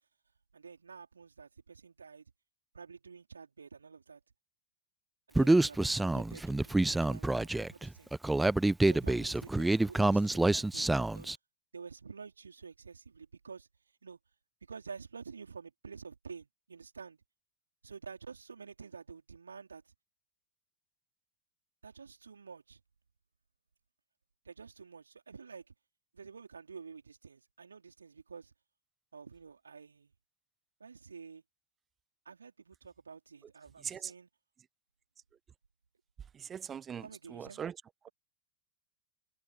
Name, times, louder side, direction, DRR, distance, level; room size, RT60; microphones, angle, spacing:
voice 1, 0.5-2.3 2.7-4.2 5.3-8.1 8.8-11.3 11.7-13.7 14.0-14.2 14.6-17.2 17.8-19.9 21.8-22.8 24.4-25.7 26.1-28.5 29.1-30.1 30.8-31.4 32.2-34.3 37.0-37.6, right 5 dB, 75° right, 4.3 m, -49 dB
Human voice, 5.4-11.4, right 2 dB, 5° right, 0.9 m, -27 dB
voice 2, 36.3-37.8, right 8 dB, 25° right, 1.3 m, -41 dB
figure-of-eight pair, 90°, 0 cm